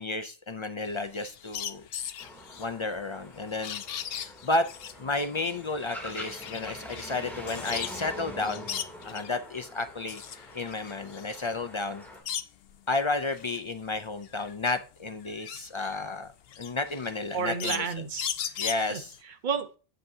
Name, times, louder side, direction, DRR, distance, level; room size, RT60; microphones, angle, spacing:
voice 1, 0.0-1.9 2.6-3.8 4.1-4.7 5.0-8.7 9.0-10.2 10.5-12.0 12.9-16.3 16.6-17.8 18.6-19.1, left 3 dB, 40° left, 8 dB, 0.4 m, -32 dB
sound 1, 0.9-8.1 8.4-9.4 9.8-12.8 13.2-19.2, left 9 dB, 75° left, 0.8 m, -38 dB
sound 2, 2.2-12.2, left 1 dB, ahead, 2.7 m, -45 dB
voice 2, 17.3-18.6 18.9-19.8, right 5 dB, 50° right, 8 dB, 1.0 m, -32 dB
7.9 x 7.5 x 2.7 m, 0.34 s
omnidirectional pair, 1.1 m